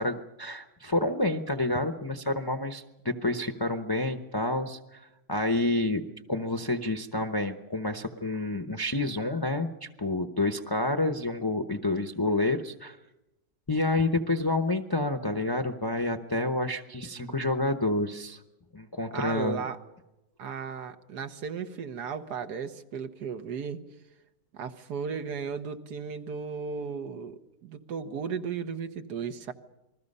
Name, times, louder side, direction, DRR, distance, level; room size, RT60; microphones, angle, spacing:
voice 1, 0.0-5.0 5.3-13.0 13.7-18.4 18.7-19.6, left 2 dB, 20° left, 6 dB, 0.7 m, -29 dB
voice 2, 19.1-19.8 20.4-23.8 24.5-29.5, right 6 dB, 75° right, 9 dB, 1.8 m, -35 dB
28.0 x 21.0 x 5.5 m, 0.96 s
omnidirectional pair, 1.8 m